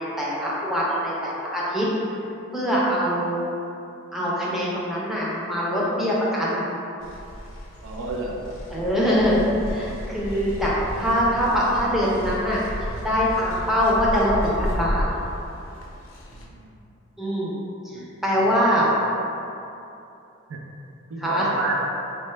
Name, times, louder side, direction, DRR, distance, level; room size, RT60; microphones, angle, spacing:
voice 1, 0.0-1.9 2.5-3.3 4.1-6.7 8.7-9.4 9.7-15.1 17.2-17.6 17.8-18.9 21.2-21.5, equal, ahead, -7 dB, 0.5 m, -23 dB
sound 1, 7.0-16.4, equal, 75° left, 0.5 m, -33 dB
voice 2, 7.8-8.5 10.6-10.7 16.3-16.8 18.6-19.2 20.5-20.6 21.1-21.9, right 2 dB, 85° right, 0 dB, 0.4 m, -30 dB
4.0 x 2.2 x 3.2 m, 2.8 s
head